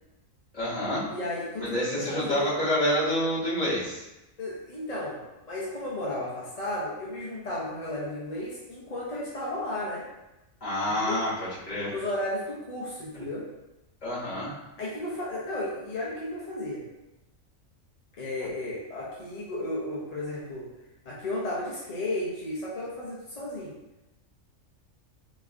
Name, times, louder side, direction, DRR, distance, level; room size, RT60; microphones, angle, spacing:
voice 1, 0.5-1.1 1.6-4.0 10.6-11.9 14.0-14.5, left 1 dB, 30° left, -10 dB, 1.5 m, -28 dB
voice 2, 1.1-2.6 4.4-5.2 5.5-10.1 10.9-11.3 11.9-13.4 14.8-16.8 18.2-20.7 21.1-23.7, left 1 dB, 45° left, -6 dB, 0.5 m, -33 dB
3.4 x 3.2 x 2.2 m, 0.98 s
omnidirectional pair, 1.4 m